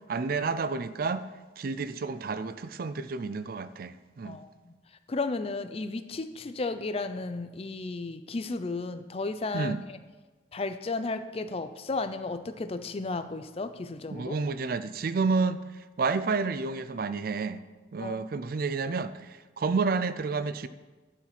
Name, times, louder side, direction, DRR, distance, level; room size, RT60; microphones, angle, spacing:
voice 1, 0.1-1.2 1.6-4.4 9.5-9.8 14.1-15.6 16.0-17.6 17.9-20.7, right 4 dB, 50° right, 13 dB, 0.4 m, -30 dB
voice 2, 4.2-4.7 5.1-10.0 10.5-14.4 18.0-18.2, left 3 dB, 30° left, 10 dB, 0.4 m, -34 dB
12.0 x 4.9 x 5.9 m, 1.3 s
head